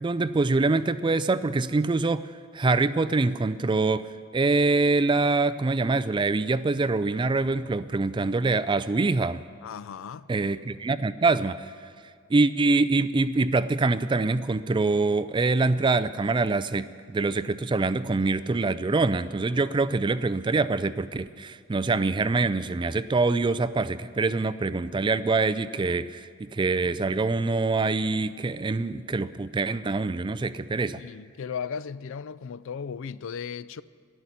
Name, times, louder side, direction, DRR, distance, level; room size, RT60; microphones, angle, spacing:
voice 1, 0.0-2.3 2.5-9.4 10.3-11.7 12.3-31.0, right 3 dB, 20° right, 0.3 m, -25 dB
voice 2, 9.6-10.3 30.9-33.8, left 6 dB, 60° left, 0.4 m, -36 dB
12.5 x 11.5 x 9.3 m
head